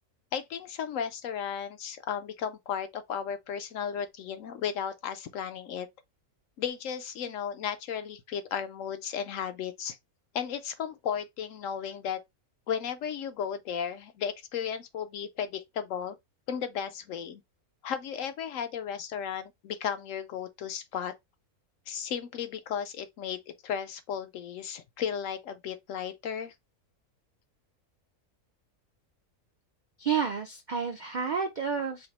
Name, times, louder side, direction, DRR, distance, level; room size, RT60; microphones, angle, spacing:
voice 1, 0.3-5.9 6.6-10.0 10.3-12.2 12.7-16.2 16.5-17.4 17.8-21.1 21.9-26.5, left 8 dB, 70° left, 0.9 m, -34 dB
voice 2, 30.0-32.1, right 6 dB, 70° right, 0.4 m, -30 dB
4.9 x 2.0 x 4.1 m
omnidirectional pair, 1.6 m